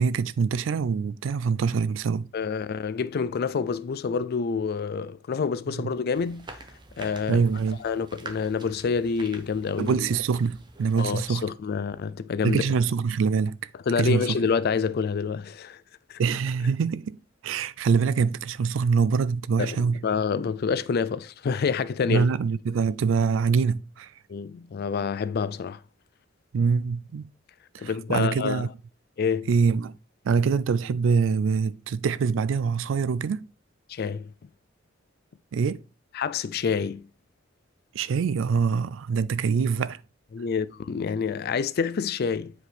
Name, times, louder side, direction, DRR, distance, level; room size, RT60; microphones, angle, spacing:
voice 1, 0.0-2.3 7.3-7.8 9.8-11.5 12.4-13.6 14.0-14.4 16.2-17.2 17.4-20.0 22.1-24.1 26.5-27.2 27.7-28.7 29.5-30.0 30.2-33.5 35.5-35.8 37.9-40.0, right 5 dB, 70° right, 0.3 m, -24 dB
voice 2, 2.3-6.5 7.0-7.4 7.8-9.9 11.0-12.6 13.9-15.8 16.1-16.2 19.6-19.8 20.0-22.3 24.3-25.8 27.8-28.6 29.2-29.5 33.9-34.3 36.1-37.0 40.3-42.5, left 5 dB, 50° left, 0.4 m, -27 dB
sound 1, 6.1-11.4, right 2 dB, 25° right, 0.8 m, -46 dB
7.8 x 4.9 x 3.3 m
head